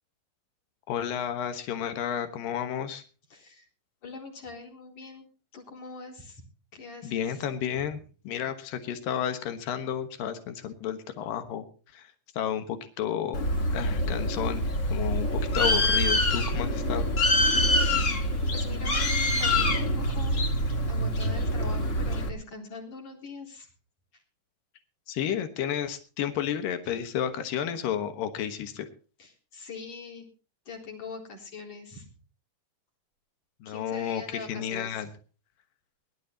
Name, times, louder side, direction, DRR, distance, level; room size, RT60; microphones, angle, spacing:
voice 1, 0.9-3.0 7.0-8.0 8.2-11.6 11.9-12.1 12.4-13.4 13.7-14.6 14.9-17.1 25.1-28.9 33.6-35.1, left 9 dB, 85° left, 8 dB, 3.0 m, -31 dB
voice 2, 3.3-3.7 4.0-5.3 5.5-6.4 6.7-7.4 18.5-20.5 20.9-23.7 24.1-24.2 26.8-26.9 29.2-30.2 30.7-32.1 33.6-35.0, left 4 dB, 50° left, -1 dB, 5.0 m, -43 dB
Bird, 13.3-22.3, left 1 dB, 35° left, 1.2 m, -25 dB
22.0 x 12.5 x 2.9 m, 0.36 s
omnidirectional pair, 3.8 m